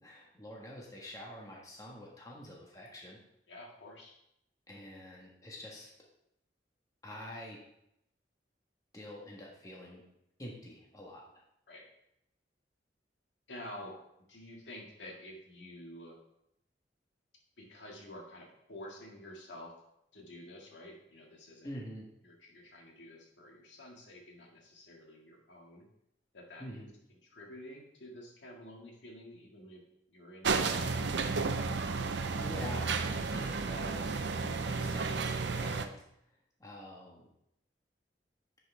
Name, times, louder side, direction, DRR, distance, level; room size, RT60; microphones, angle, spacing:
voice 1, 0.0-3.2 4.7-5.9 7.0-7.6 8.9-10.0 10.4-11.2 21.6-22.1 26.6-26.9 32.0-35.9 36.6-37.3, left 1 dB, 20° left, -3 dB, 1.3 m, -46 dB
voice 2, 3.5-4.1 11.7-11.9 13.5-14.0 14.3-16.2 17.6-19.7 20.1-21.7 22.2-25.9 26.3-26.8 27.2-29.8 30.1-31.2 35.6-35.8, left 1 dB, 85° left, -1 dB, 1.9 m, -49 dB
sound 1, 30.4-35.9, right 4 dB, 75° right, 0.6 m, -32 dB
10.0 x 5.6 x 3.3 m, 0.79 s
head